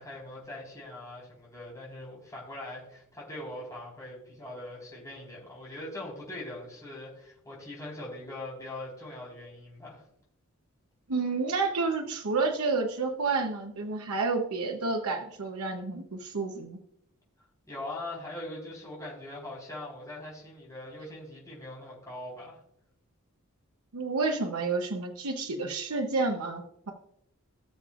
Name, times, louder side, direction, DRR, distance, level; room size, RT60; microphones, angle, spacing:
voice 1, 0.0-10.0 17.7-22.6, left 1 dB, 15° left, -5 dB, 4.1 m, -41 dB
voice 2, 11.1-16.8 23.9-26.9, right 3 dB, 85° right, 3 dB, 0.9 m, -30 dB
18.5 x 6.9 x 2.5 m, 0.74 s
head